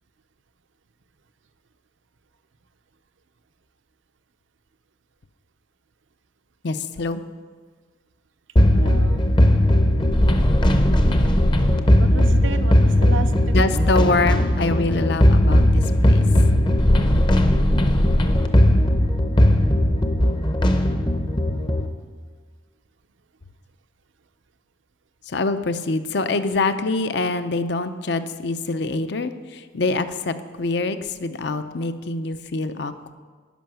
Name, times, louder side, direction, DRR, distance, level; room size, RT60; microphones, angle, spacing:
voice 1, 6.6-7.2 13.5-16.3 19.2-19.3 25.3-33.1, left 3 dB, 60° left, 10 dB, 0.6 m, -25 dB
sound 1, 8.6-21.9, left 1 dB, 25° left, 0.7 m, -17 dB
voice 2, 8.7-9.3 12.0-13.8 15.5-15.6, right 4 dB, 80° right, 10 dB, 0.7 m, -33 dB
12.5 x 5.6 x 9.1 m, 1.5 s
head